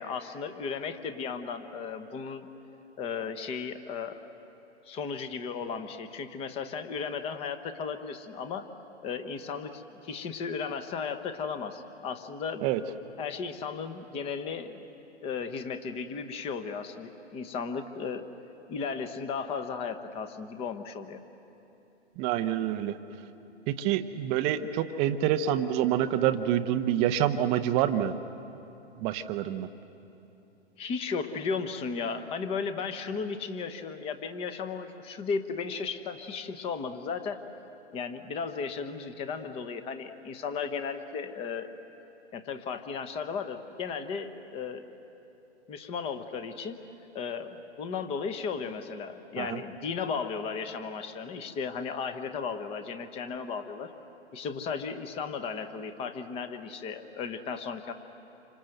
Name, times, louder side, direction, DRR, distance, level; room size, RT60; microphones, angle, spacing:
voice 1, 0.0-2.5 3.0-4.2 4.8-8.7 9.0-12.7 13.2-14.8 15.2-18.2 18.7-21.2 30.8-37.4 37.9-41.7 42.3-44.8 45.7-46.8 47.1-53.9 54.3-57.9, left 5 dB, 15° left, 10 dB, 1.0 m, -35 dB
voice 2, 22.2-23.0 23.7-28.1 29.0-29.7 49.4-49.6, right 11 dB, 15° right, 9 dB, 0.6 m, -27 dB
28.0 x 26.0 x 7.8 m, 3.0 s
hypercardioid pair, 140°, 35 cm